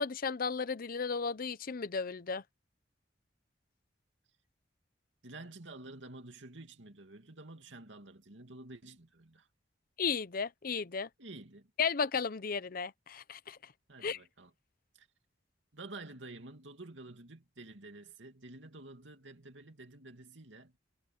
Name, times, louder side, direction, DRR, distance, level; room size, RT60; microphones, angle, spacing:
voice 1, 0.0-2.4 10.0-11.1 11.8-13.6 14.0-14.2, left 5 dB, 50° left, 0.7 m, -34 dB
voice 2, 5.2-9.5 11.2-11.7 13.9-14.5 15.0-15.1 15.7-20.7, right 2 dB, 80° right, 2.6 m, -50 dB
head